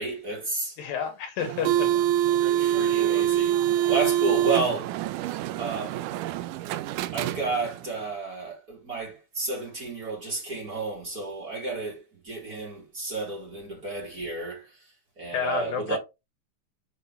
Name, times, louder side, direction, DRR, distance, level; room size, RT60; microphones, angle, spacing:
voice 1, 0.0-0.7 2.6-4.9 5.6-6.1 7.1-14.6 15.2-16.0, right 3 dB, 25° right, 4.2 m, -31 dB
voice 2, 0.8-1.9 4.4-4.6 15.3-16.0, left 7 dB, 75° left, 3.2 m, -30 dB
sound 1, 1.4-7.9, right 12 dB, 80° right, 1.9 m, -25 dB
7.2 x 6.8 x 3.2 m
omnidirectional pair, 4.2 m